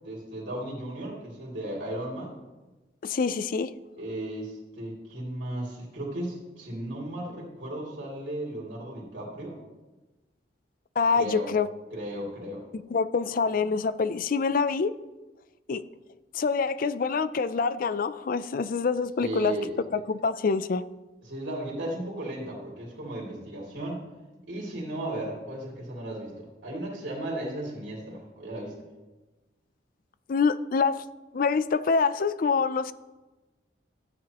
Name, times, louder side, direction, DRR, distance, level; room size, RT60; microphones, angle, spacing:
voice 1, 0.0-2.3 4.0-9.6 11.1-11.5 11.9-12.6 19.2-19.7 21.2-24.0 24.5-28.7, right 1 dB, 85° right, -4 dB, 2.9 m, -35 dB
voice 2, 3.0-3.7 11.0-11.7 12.7-14.9 15.7-15.8 16.3-19.6 19.9-20.8 30.3-31.0 31.3-32.9, left 5 dB, 50° left, 15 dB, 0.4 m, -26 dB
14.0 x 9.7 x 3.0 m, 1.2 s
head